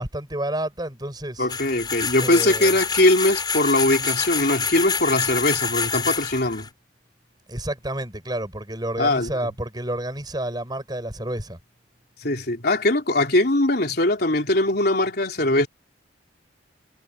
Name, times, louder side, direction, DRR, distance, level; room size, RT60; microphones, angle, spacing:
voice 1, 0.0-1.5 2.2-2.8 7.5-11.6, right 1 dB, 20° right, 6.2 m, -30 dB
voice 2, 1.4-6.7 9.0-9.3 12.2-15.7, left 2 dB, 55° left, 3.8 m, -21 dB
sound 1, 1.5-6.7, left 5 dB, 25° left, 4.5 m, -27 dB
head